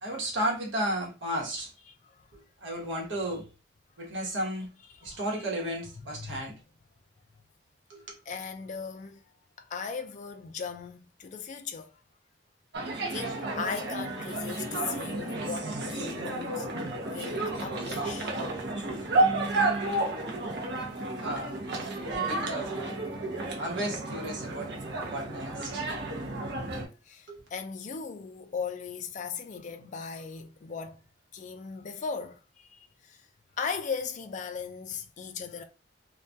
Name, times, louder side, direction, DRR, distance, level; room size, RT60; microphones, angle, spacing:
voice 1, 0.0-1.7 2.6-3.4 4.0-4.7 5.0-6.5 7.9-8.1 21.2-21.6 22.1-23.0 23.6-24.7 25.1-25.9 27.3-27.4, right 1 dB, 80° right, 1.0 m, -33 dB
voice 2, 1.5-2.3 4.9-5.5 6.0-6.5 8.3-9.2 9.6-12.0 13.1-16.7 17.1-18.4 21.9-22.2 27.0-31.0 31.3-33.3 33.6-35.6, left 6 dB, 40° left, 0.3 m, -38 dB
sound 1, 12.7-26.9, right 2 dB, 65° right, 0.6 m, -31 dB
2.3 x 2.2 x 2.6 m
head